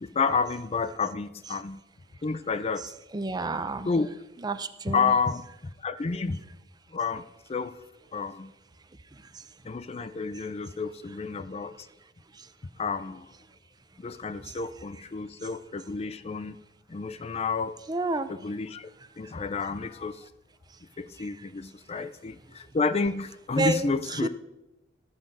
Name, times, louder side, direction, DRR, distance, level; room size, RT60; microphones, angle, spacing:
voice 1, 0.0-1.8 2.2-2.9 3.9-4.1 4.9-5.4 5.8-6.4 6.9-7.2 7.5-7.7 8.1-8.5 9.6-11.9 12.8-13.3 14.0-16.6 16.9-17.8 18.3-18.9 19.2-20.3 21.0-24.3, left 4 dB, 35° left, 12 dB, 0.4 m, -30 dB
voice 2, 3.1-3.9 4.4-5.1 17.9-18.3 23.6-23.9 24.2-24.3, right 2 dB, 20° right, 11 dB, 0.5 m, -29 dB
12.0 x 7.5 x 5.3 m, 0.93 s
head